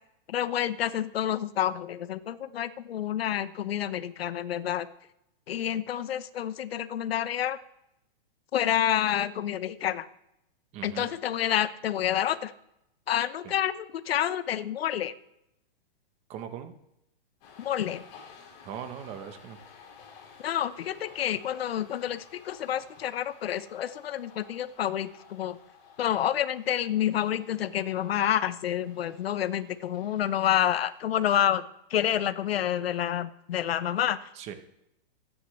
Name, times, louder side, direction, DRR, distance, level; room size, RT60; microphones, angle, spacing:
voice 1, 0.3-4.9 5.5-7.6 8.5-10.1 10.8-12.5 13.1-15.1 17.6-18.0 20.4-25.6 26.0-31.6 31.9-34.3, left 10 dB, 75° left, 13 dB, 1.0 m, -28 dB
voice 2, 10.7-11.1 13.4-13.5 16.3-16.7 18.6-19.6 34.3-34.5, right 9 dB, 20° right, 8 dB, 1.0 m, -39 dB
sound 1, 17.4-31.2, left 6 dB, 35° left, 4.4 m, -54 dB
24.5 x 10.0 x 3.3 m, 0.82 s
hypercardioid pair, 165°, 30 cm